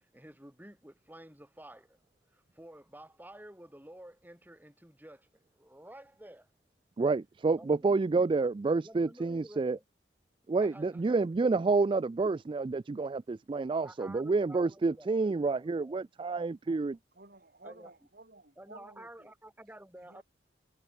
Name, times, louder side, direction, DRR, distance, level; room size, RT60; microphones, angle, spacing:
voice 1, 0.1-2.0 2.6-5.3 5.6-6.5 7.6-8.5 8.8-9.8 10.6-11.2 13.7-15.2 15.5-16.1 16.6-16.8 17.6-17.9 18.6-20.2, right 1 dB, 10° right, 4.4 m, -51 dB
voice 2, 7.0-9.8 10.5-17.0, right 3 dB, 30° right, 0.3 m, -29 dB
voice 3, 17.1-19.3 20.0-20.2, right 2 dB, 55° right, 6.2 m, -54 dB
head